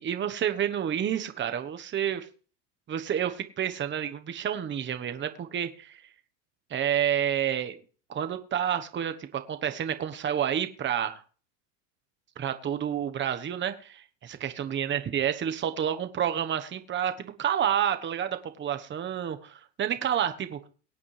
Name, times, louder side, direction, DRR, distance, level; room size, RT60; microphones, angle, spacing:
voice 1, 0.0-2.3 2.9-6.0 6.7-7.8 8.1-11.2 12.4-20.6, right 9 dB, 25° right, 9 dB, 1.1 m, -29 dB
22.5 x 8.5 x 3.3 m, 0.39 s
supercardioid pair, 120°, 49 cm